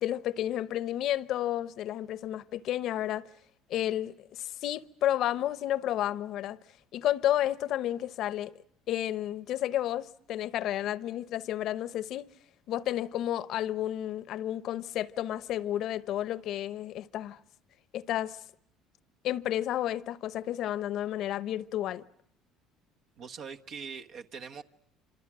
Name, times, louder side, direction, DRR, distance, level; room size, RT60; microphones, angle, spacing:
voice 1, 0.0-3.3 3.7-6.6 6.9-8.5 8.9-12.3 12.7-17.4 17.9-18.4 19.2-22.0, left 12 dB, 60° left, 0.9 m, -31 dB
voice 2, 23.2-24.6, right 6 dB, 55° right, 1.4 m, -42 dB
27.0 x 26.5 x 6.2 m
supercardioid pair, 95°, 0 cm